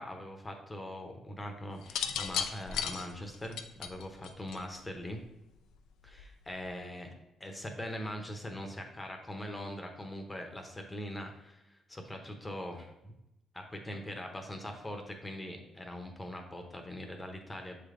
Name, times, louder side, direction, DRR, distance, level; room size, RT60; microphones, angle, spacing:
voice 1, 0.0-5.2 6.0-7.1 7.4-13.1 13.5-17.8, left 1 dB, 15° left, 3 dB, 0.9 m, -42 dB
sound 1, 1.8-5.0 6.1-6.4, left 8 dB, 85° left, 0.4 m, -35 dB
7.4 x 3.3 x 3.8 m, 0.91 s
cardioid pair, 90°, 0 cm